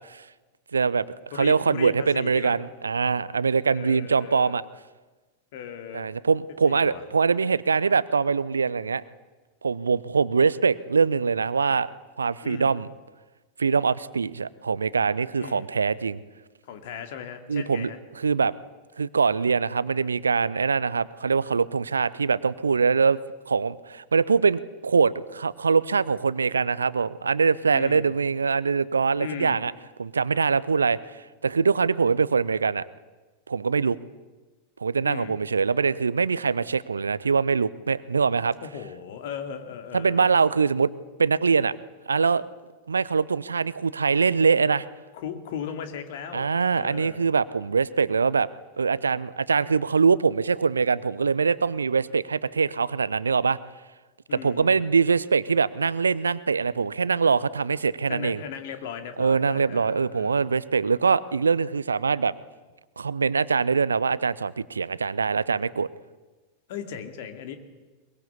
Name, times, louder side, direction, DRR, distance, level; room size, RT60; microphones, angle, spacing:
voice 1, 0.7-1.1 1.3-4.6 5.9-9.0 9.6-11.9 12.2-12.9 13.6-16.2 17.5-17.9 18.2-18.5 19.0-23.2 23.5-29.7 30.0-32.8 33.5-34.0 34.8-38.6 39.9-40.9 41.2-41.8 42.1-42.4 42.9-44.8 46.3-48.5 48.8-53.6 54.3-58.4 59.2-62.3 63.0-65.9, right 5 dB, 75° right, 19 dB, 0.7 m, -23 dB
voice 2, 1.3-2.7 3.7-4.6 5.5-6.1 6.6-7.0 12.4-12.7 15.4-15.7 16.7-18.0 27.7-28.1 29.2-29.6 35.0-35.4 38.6-40.3 45.1-47.2 54.3-54.8 58.1-60.5 66.7-67.6, left 8 dB, 55° left, 7 dB, 2.5 m, -37 dB
22.0 x 21.5 x 8.5 m, 1.2 s
figure-of-eight pair, 90°, 0 cm